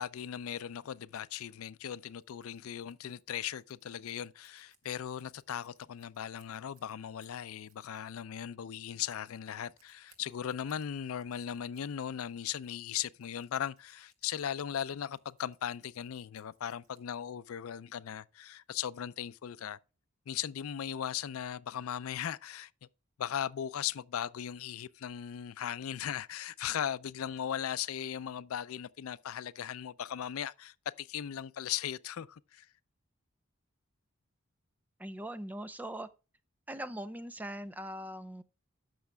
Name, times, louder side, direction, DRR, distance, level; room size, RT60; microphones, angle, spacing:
voice 1, 0.0-19.8 20.3-22.7 23.2-32.7, left 9 dB, 80° left, 0.4 m, -38 dB
Scissors, 1.8-17.5, right 6 dB, 75° right, 2.2 m, -72 dB
voice 2, 35.0-36.1 36.7-38.4, right 1 dB, 10° right, 0.4 m, -41 dB
14.0 x 6.4 x 2.2 m
head